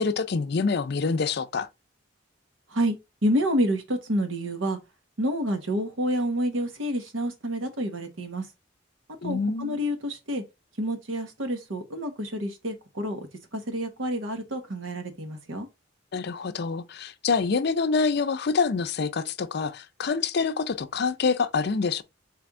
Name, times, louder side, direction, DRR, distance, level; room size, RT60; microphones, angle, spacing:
voice 1, 0.0-1.7 9.2-9.8 16.1-22.0, left 4 dB, 55° left, 0.5 m, -26 dB
voice 2, 3.2-4.8 5.2-8.5 9.2-10.4 10.8-13.2 13.5-15.7, equal, 90° right, 1.2 m, -28 dB
4.3 x 3.4 x 3.5 m
head